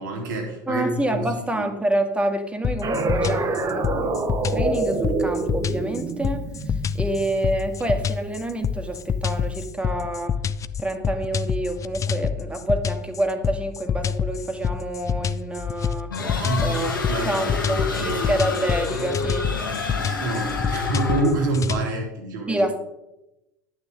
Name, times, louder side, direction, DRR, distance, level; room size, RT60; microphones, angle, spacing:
voice 1, 0.0-1.2 1.6-1.7 16.4-16.7 17.1-18.1 20.2-22.8, right 2 dB, 75° right, 1 dB, 2.9 m, -27 dB
voice 2, 0.7-10.4 10.8-16.1 16.6-17.0 17.2-19.5 22.5-22.8, right 1 dB, 10° right, 6 dB, 1.7 m, -28 dB
sound 1, 2.6-21.8, left 7 dB, 30° left, 0.6 m, -27 dB
sound 2, 2.8-8.1, right 3 dB, 35° right, 1.3 m, -27 dB
sound 3, 16.1-21.5, left 3 dB, 90° left, 1.6 m, -28 dB
11.0 x 9.4 x 3.8 m, 0.93 s
hypercardioid pair, 75°, 11 cm